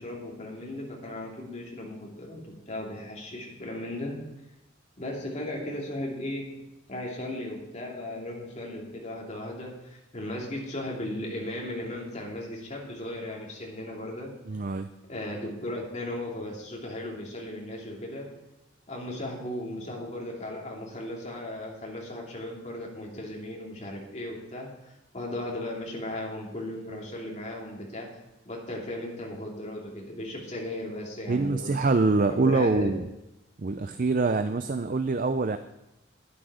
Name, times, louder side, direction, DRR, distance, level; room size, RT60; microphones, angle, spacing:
voice 1, 0.0-4.2 5.0-6.5 6.9-14.3 15.1-18.3 18.9-28.1 28.4-31.7 32.3-32.9, left 1 dB, 35° left, -2 dB, 2.8 m, -36 dB
voice 2, 14.5-14.9 31.3-33.1 33.6-35.6, right 3 dB, 40° right, 10 dB, 0.4 m, -25 dB
11.5 x 10.0 x 5.0 m, 0.95 s
head